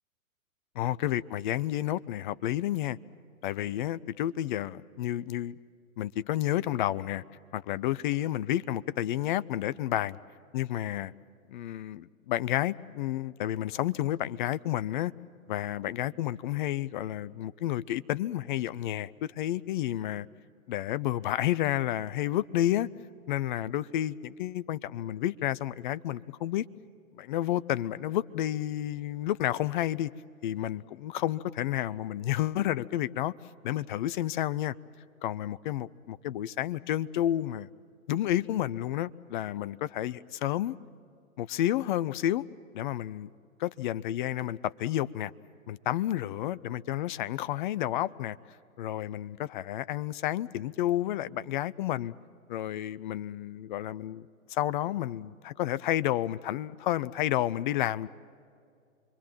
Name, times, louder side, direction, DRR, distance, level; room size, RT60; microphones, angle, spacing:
voice 1, 0.7-3.0 3.4-5.5 6.0-7.2 7.5-10.2 10.5-11.1 11.5-15.1 15.5-20.3 20.7-22.9 23.3-26.7 27.1-30.1 30.4-33.3 33.6-34.7 35.2-37.7 38.1-40.8 41.4-42.4 42.7-43.3 43.6-45.3 45.7-48.4 48.8-52.1 52.5-58.1, left 13 dB, 35° left, 0.6 m, -30 dB
28.0 x 23.0 x 7.5 m
figure-of-eight pair, 110°, 41 cm